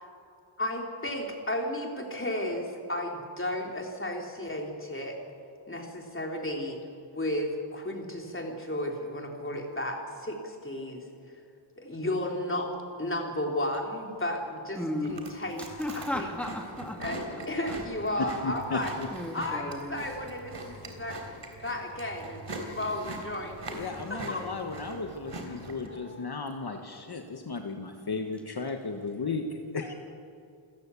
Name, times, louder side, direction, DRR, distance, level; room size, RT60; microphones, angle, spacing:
voice 1, 0.6-5.2 5.7-6.8 7.1-11.0 11.8-12.7 13.0-15.7 15.9-16.3 17.0-18.9 19.3-21.2 21.6-23.8 24.1-24.4 25.9-26.4, left 1 dB, 25° left, 1 dB, 3.5 m, -33 dB
voice 2, 14.8-15.2 15.6-17.0 17.7-17.8 18.1-18.3 19.1-20.0, left 1 dB, ahead, 2 dB, 2.3 m, -35 dB
Chewing mastication, 15.0-25.9, right 1 dB, 60° right, 3.6 m, -42 dB
voice 3, 18.4-19.1 23.7-29.9, left 4 dB, 50° left, 4 dB, 1.5 m, -35 dB
28.0 x 14.5 x 8.5 m, 2.5 s
wide cardioid pair, 110°, 49 cm